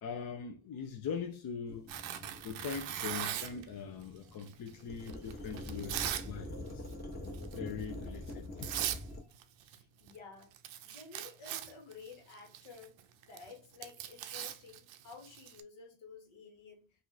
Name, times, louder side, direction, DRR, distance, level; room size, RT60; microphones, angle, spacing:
voice 1, 0.0-1.9 2.4-6.9 7.5-8.7, left 6 dB, 50° left, 0.6 m, -42 dB
sound 1, 1.7-9.2, left 1 dB, 20° left, 1.0 m, -45 dB
Tearing, 1.9-3.7 4.4-6.3 6.6-6.9 7.3-7.6 8.3-8.4 8.6-9.0 9.3-9.8 10.1-10.2 10.4-15.6, right 12 dB, 70° right, 0.6 m, -40 dB
voice 2, 8.6-9.4 9.7-10.5 10.8-16.8, left 5 dB, 75° left, 1.5 m, -53 dB
2.9 x 2.5 x 3.8 m
cardioid pair, 90°, 48 cm